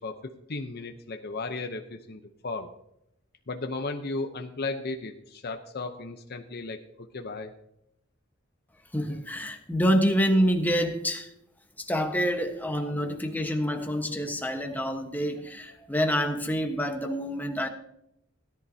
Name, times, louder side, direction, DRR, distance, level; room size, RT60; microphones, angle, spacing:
voice 1, 0.0-2.7 3.5-7.5 13.6-13.7, left 3 dB, 55° left, 5 dB, 0.8 m, -35 dB
voice 2, 8.9-11.3 11.8-17.7, equal, 10° left, 4 dB, 1.2 m, -27 dB
17.0 x 10.5 x 2.8 m, 0.79 s
head